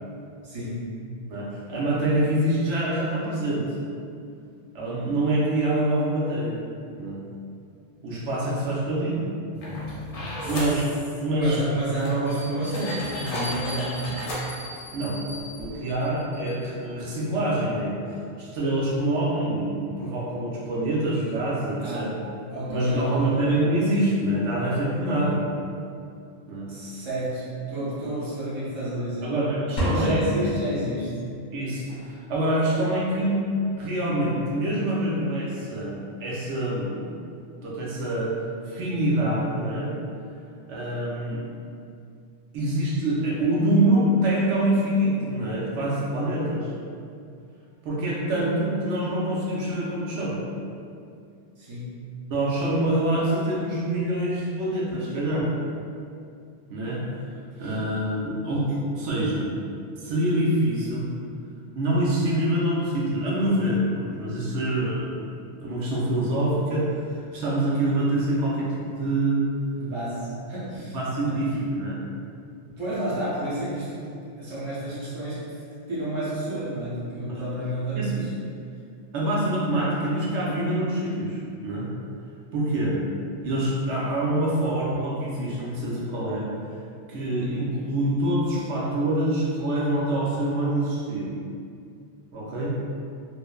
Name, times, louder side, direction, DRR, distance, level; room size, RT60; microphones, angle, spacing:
voice 1, 0.4-1.0 10.4-10.5 11.3-14.2 21.8-22.2 22.5-23.4 26.7-29.3 29.8-31.1 51.6-52.1 57.6-57.8 69.7-71.4 72.7-74.1 74.4-75.4 75.9-78.3, right 1 dB, 30° right, -10 dB, 0.6 m, -30 dB
voice 2, 1.3-3.7 4.7-6.6 6.9-7.2 8.0-9.2 10.4-10.9 11.2-11.6 14.9-15.2 15.5-18.0 18.4-22.1 22.7-25.5 26.5-26.7 29.2-30.2 31.5-33.4 33.7-37.1 37.6-38.3 38.7-39.9 40.7-41.5 42.5-46.7 47.8-50.4 52.3-55.5 56.7-57.1 57.6-58.6 58.9-59.5 60.0-61.1 61.7-65.3 65.6-69.4 70.9-72.0 77.3-77.4 77.9-78.3 79.1-81.9 82.5-83.0 83.4-86.5 87.1-91.3 92.3-92.7, right 1 dB, 75° right, -6 dB, 0.9 m, -25 dB
sound 1, 9.5-10.8 11.6-11.7 12.0-14.4 15.3-15.4 15.6-15.8, left 1 dB, 80° left, 1.0 m, -33 dB
Bell, 12.3-16.8, equal, 5° right, 0.9 m, -41 dB
sound 2, 29.8-31.6, left 1 dB, 50° left, 0.6 m, -28 dB
3.0 x 2.0 x 2.2 m, 2.4 s
omnidirectional pair, 1.2 m